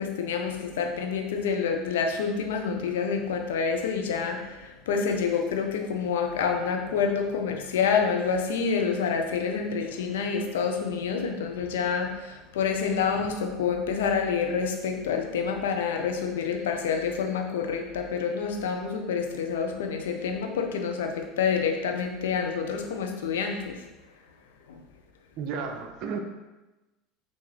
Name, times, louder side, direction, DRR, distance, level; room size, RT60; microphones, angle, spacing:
voice 1, 0.0-23.8 24.7-24.8, left 6 dB, 75° left, 3 dB, 0.6 m, -28 dB
voice 2, 25.4-26.2, right 5 dB, 55° right, 3 dB, 0.5 m, -33 dB
5.9 x 2.6 x 3.2 m, 1.1 s
hypercardioid pair, 80°, 0 cm